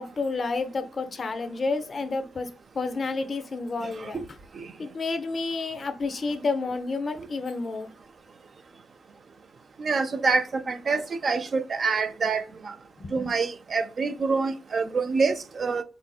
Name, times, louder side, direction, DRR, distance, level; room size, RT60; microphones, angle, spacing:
voice 1, 0.0-4.2 4.8-7.9 13.0-13.2, left 3 dB, 40° left, 0.5 m, -30 dB
voice 2, 9.8-12.7 13.1-15.8, right 4 dB, 45° right, 0.4 m, -26 dB
3.4 x 2.5 x 2.3 m
cardioid pair, 95°, 0 cm